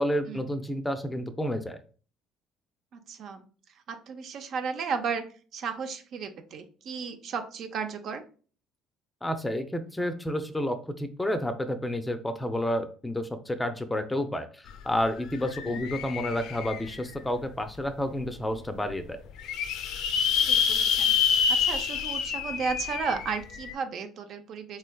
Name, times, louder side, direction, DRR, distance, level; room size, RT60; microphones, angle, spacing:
voice 1, 0.0-1.8 9.2-19.2, left 1 dB, 10° left, 9 dB, 0.5 m, -30 dB
voice 2, 2.9-3.4 3.9-5.2 5.5-8.2 15.7-15.9 20.5-21.2 21.5-24.8, right 5 dB, 60° right, 7 dB, 0.5 m, -34 dB
sound 1, 14.7-14.8 15.1-17.2 17.8-17.9 18.2-18.3 18.5-18.6 19.1-23.7, left 7 dB, 70° left, 0.5 m, -27 dB
3.6 x 3.2 x 2.3 m, 0.40 s
supercardioid pair, 80°, 0 cm